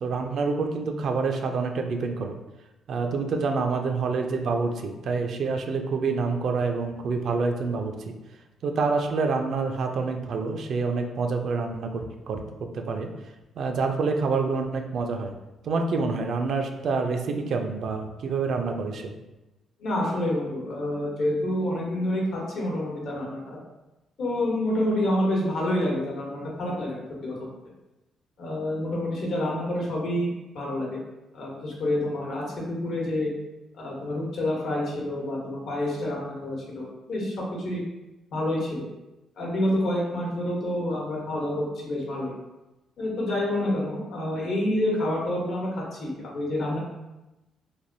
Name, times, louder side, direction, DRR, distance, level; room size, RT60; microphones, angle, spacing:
voice 1, 0.0-2.4 2.9-7.9 8.6-12.4 12.7-13.1 13.6-15.3 15.6-19.1, right 4 dB, 65° right, 4 dB, 0.4 m, -27 dB
voice 2, 19.8-23.6 24.2-27.5 28.4-30.3 30.5-31.0 31.3-33.3 33.8-37.8 38.3-38.8 39.4-42.3 43.0-46.8, left 1 dB, 70° left, -3 dB, 0.9 m, -28 dB
3.3 x 2.2 x 2.6 m, 1.0 s
cardioid pair, 90°, 0 cm